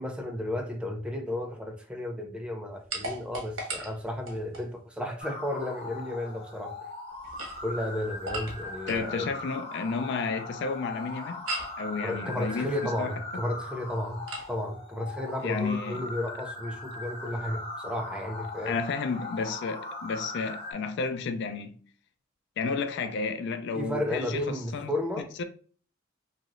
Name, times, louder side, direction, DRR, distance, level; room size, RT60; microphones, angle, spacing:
voice 1, 0.0-6.7 7.6-9.3 12.0-18.8 23.7-25.3, left 1 dB, 5° right, 0.5 m, -33 dB
sound 1, 2.9-4.7 7.2-9.1 11.5-11.8 14.3-14.5, right 2 dB, 90° right, 1.2 m, -37 dB
sound 2, 5.2-20.7, left 2 dB, 30° left, 0.8 m, -40 dB
voice 2, 8.9-11.5 11.8-12.7 13.0-13.4 15.4-16.0 18.6-21.8 22.6-24.4 24.7-24.9 25.4-25.5, left 4 dB, 60° left, 0.4 m, -32 dB
3.1 x 2.8 x 2.4 m
head